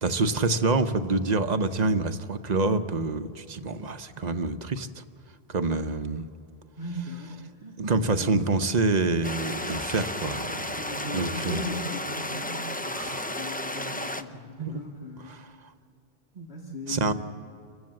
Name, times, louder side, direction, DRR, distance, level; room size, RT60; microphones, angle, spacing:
voice 1, 0.0-5.0 5.5-6.3 7.6-10.8 11.1-11.7 12.9-13.3 14.6-14.7 15.2-15.5 16.4-16.5 16.9-17.1, right 3 dB, 45° right, 10 dB, 0.8 m, -27 dB
voice 2, 6.8-7.4 8.0-8.3 10.6-15.4 16.5-17.1, equal, 90° left, -1 dB, 2.5 m, -38 dB
sound 1, 9.2-14.2, left 1 dB, 10° left, 0.4 m, -33 dB
28.0 x 15.0 x 7.6 m, 2.4 s
omnidirectional pair, 1.0 m